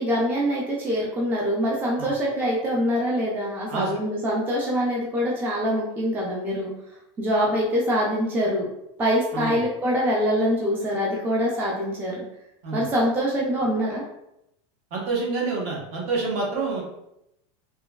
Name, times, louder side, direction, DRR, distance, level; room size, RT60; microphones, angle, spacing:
voice 1, 0.0-6.7 7.2-8.7 9.0-12.2 12.7-14.0, equal, 10° right, -4 dB, 0.3 m, -24 dB
voice 2, 14.9-16.8, right 4 dB, 55° right, -3 dB, 0.9 m, -27 dB
3.0 x 2.2 x 2.3 m, 0.82 s
supercardioid pair, 150°, 15 cm